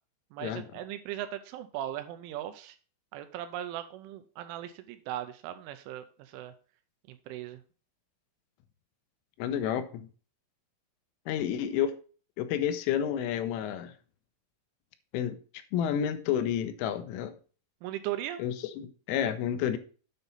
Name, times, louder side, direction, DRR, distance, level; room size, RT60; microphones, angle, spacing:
voice 1, 0.3-2.8 3.1-6.5 7.1-7.6 17.8-18.4, right 12 dB, 85° right, 3.0 m, -38 dB
voice 2, 9.4-10.1 11.3-12.0 12.4-13.9 15.1-15.4 15.7-17.3 18.4-19.8, left 9 dB, 80° left, 3.2 m, -30 dB
9.1 x 5.3 x 4.1 m
omnidirectional pair, 5.8 m